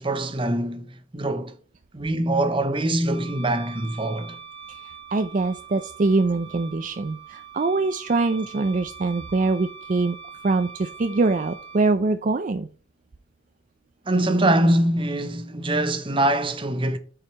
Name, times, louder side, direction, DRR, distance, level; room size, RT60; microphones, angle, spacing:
voice 1, 0.0-1.6 1.9-4.4 14.1-17.0, right 1 dB, 30° right, 0.8 m, -23 dB
Wind instrument woodwind instrument, 3.1-11.9, right 6 dB, 65° right, 1.8 m, -43 dB
voice 2, 4.7-10.2 10.4-12.7, right 3 dB, 45° right, 0.4 m, -24 dB
8.7 x 4.8 x 4.3 m
head